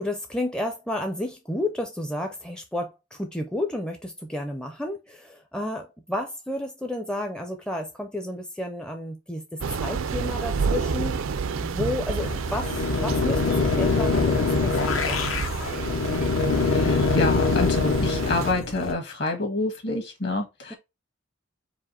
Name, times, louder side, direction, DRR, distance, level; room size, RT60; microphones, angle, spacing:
voice 1, 0.0-15.5, left 1 dB, 5° left, 0.5 m, -32 dB
Thunder / Rain, 9.6-18.5, right 5 dB, 75° right, 0.4 m, -30 dB
sound 1, 12.2-18.9, left 4 dB, 70° left, 0.8 m, -24 dB
voice 2, 16.6-20.7, left 2 dB, 55° left, 1.6 m, -28 dB
4.8 x 2.5 x 4.2 m
head